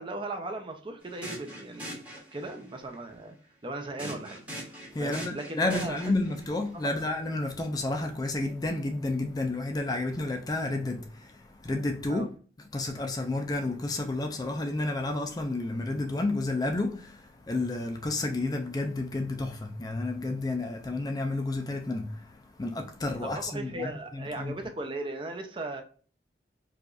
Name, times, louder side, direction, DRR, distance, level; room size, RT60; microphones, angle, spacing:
voice 1, 0.0-3.4 3.6-4.4 5.0-6.0 6.9-7.0 12.1-12.3 23.2-25.8, right 2 dB, 30° right, 0.6 m, -37 dB
sound 1, 1.0-2.7 4.0-6.5, equal, 10° right, 1.2 m, -42 dB
voice 2, 4.9-12.3 12.7-24.5, left 2 dB, 20° left, 0.4 m, -31 dB
4.8 x 2.4 x 2.4 m
head